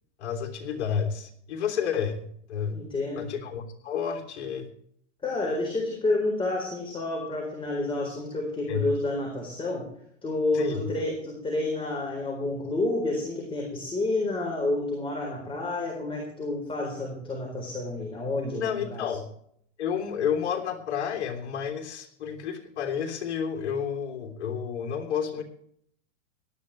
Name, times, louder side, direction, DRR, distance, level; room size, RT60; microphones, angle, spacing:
voice 1, 0.2-2.8 3.2-4.7 8.7-8.9 10.5-10.9 18.5-19.3 19.8-25.4, left 7 dB, 65° left, 3 dB, 3.2 m, -30 dB
voice 2, 2.7-3.3 5.2-9.8 10.2-19.0, left 2 dB, 15° left, -1 dB, 4.0 m, -29 dB
18.0 x 12.5 x 3.2 m, 0.67 s
hypercardioid pair, 125°, 38 cm